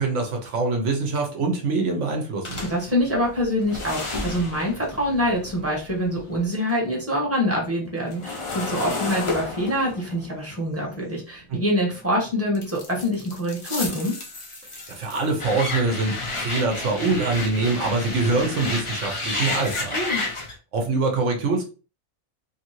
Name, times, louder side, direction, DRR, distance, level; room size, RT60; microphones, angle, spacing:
voice 1, 0.0-2.6 11.5-11.6 14.9-20.0 20.7-21.6, right 3 dB, 65° right, 2 dB, 1.0 m, -24 dB
sound 1, 2.4-6.7 7.1-12.0 12.5-20.5, left 2 dB, 40° left, 0.4 m, -32 dB
voice 2, 2.6-14.1 19.9-20.2, equal, 10° right, -2 dB, 0.9 m, -25 dB
2.8 x 2.6 x 2.9 m, 0.35 s
omnidirectional pair, 1.5 m